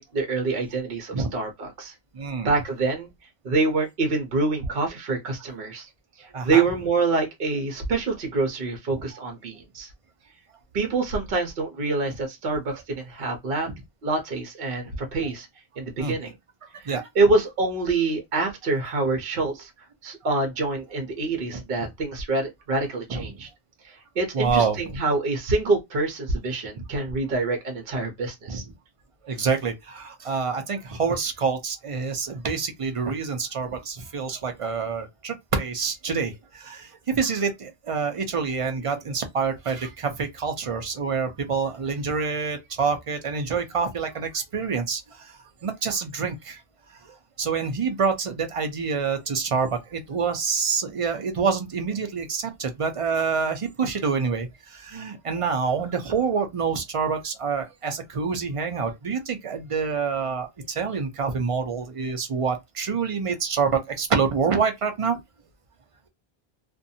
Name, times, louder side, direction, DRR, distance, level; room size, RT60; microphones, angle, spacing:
voice 1, 0.0-1.9 2.4-3.1 3.4-5.9 6.2-9.9 10.7-13.7 14.0-15.5 15.8-16.3 16.8-19.7 20.0-23.5 23.8-28.6, right 3 dB, 60° right, 0.9 m, -26 dB
voice 2, 2.1-2.5 6.3-6.6 16.0-16.2 16.8-17.0 21.5-21.9 23.1-23.3 24.3-25.0 28.5-28.6 29.2-46.6 47.0-65.2, right 5 dB, 40° right, 0.5 m, -27 dB
2.5 x 2.2 x 2.6 m
omnidirectional pair, 1.1 m